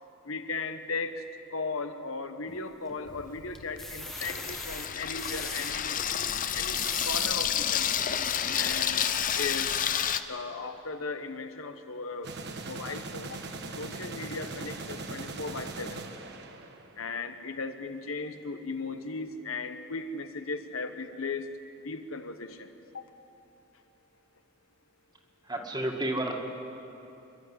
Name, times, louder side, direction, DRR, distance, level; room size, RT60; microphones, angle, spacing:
voice 1, 0.3-1.2 1.5-6.0 6.5-6.8 7.1-8.0 8.5-9.1 9.4-9.8 10.3-12.3 12.7-13.4 13.8-16.0 17.0-21.5 21.8-22.7 22.9-23.0, left 4 dB, 75° left, 8 dB, 1.2 m, -36 dB
sound 1, 2.5-3.1 3.5-5.7 6.5-7.4 8.0-8.1 8.4-8.5, left 1 dB, ahead, 1.4 m, -40 dB
Water tap faucet / Sink (filling or washing), 3.1-10.2, left 9 dB, 40° left, 0.7 m, -30 dB
sound 2, 12.2-17.1, right 3 dB, 55° right, 1.4 m, -40 dB
voice 2, 25.5-26.3, right 1 dB, 20° right, 2 dB, 2.1 m, -31 dB
26.5 x 12.5 x 9.8 m, 2.9 s
head